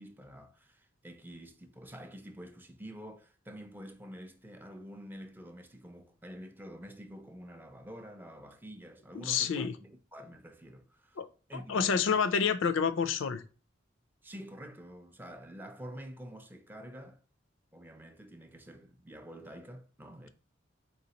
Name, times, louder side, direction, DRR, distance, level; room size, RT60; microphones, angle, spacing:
voice 1, 0.0-11.2 11.5-12.2 14.2-17.2 17.7-20.3, equal, 10° right, 0.4 m, -48 dB
voice 2, 9.1-9.7 11.2-11.3 11.5-13.4, left 6 dB, 75° left, 0.4 m, -28 dB
4.0 x 3.7 x 2.8 m
head